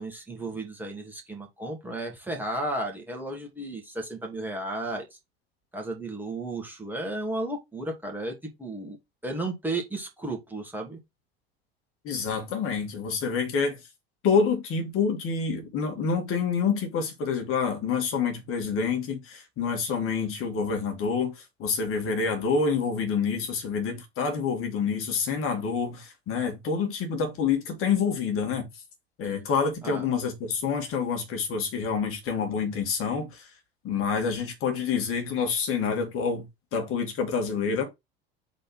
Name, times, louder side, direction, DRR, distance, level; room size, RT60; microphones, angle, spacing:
voice 1, 0.0-5.1 5.7-9.0 9.2-11.0 29.8-30.0, right 2 dB, 5° right, 2.3 m, -33 dB
voice 2, 12.0-13.8 14.2-28.8 29.2-33.5 33.8-37.8, left 5 dB, 45° left, 2.1 m, -27 dB
4.3 x 4.0 x 5.5 m
figure-of-eight pair, 70°, 31 cm